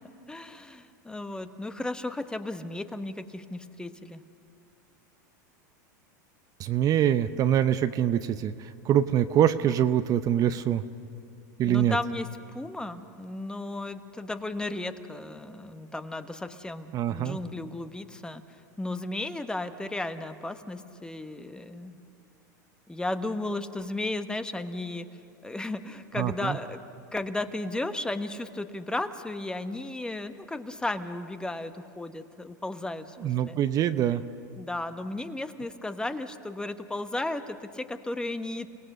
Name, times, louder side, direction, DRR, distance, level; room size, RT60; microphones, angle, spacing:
voice 1, 0.3-4.2 11.7-18.4 18.8-22.0 22.9-25.1 25.4-26.8 27.1-33.6 34.6-38.7, left 2 dB, 10° left, 9 dB, 1.1 m, -34 dB
voice 2, 6.6-10.8 11.6-12.0 16.9-17.4 26.2-26.6 33.2-34.2, right 10 dB, 35° right, 11 dB, 0.7 m, -24 dB
29.5 x 18.0 x 6.7 m, 2.6 s
hypercardioid pair, 110°, 10 cm